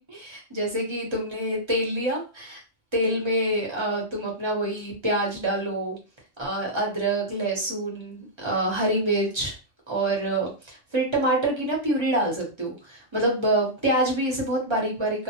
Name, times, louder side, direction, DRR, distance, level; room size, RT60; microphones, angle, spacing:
voice 1, 0.0-2.6 2.9-6.0 6.4-9.5 9.9-15.2, right 1 dB, 30° right, -2 dB, 0.8 m, -26 dB
2.1 x 2.1 x 2.8 m, 0.32 s
omnidirectional pair, 1.2 m